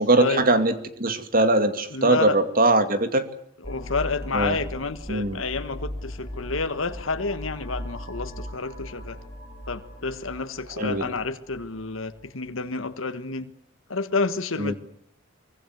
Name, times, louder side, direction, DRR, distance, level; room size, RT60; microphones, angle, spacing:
voice 1, 0.0-3.3 4.3-4.6 5.1-5.4 10.8-11.0 14.6-14.7, right 2 dB, 45° right, 2.4 m, -21 dB
voice 2, 1.9-2.4 3.6-9.2 9.7-13.5 13.9-14.7, left 3 dB, 85° left, 1.5 m, -29 dB
sound 1, 3.6-12.3, equal, 20° left, 4.2 m, -38 dB
24.5 x 24.0 x 8.0 m
head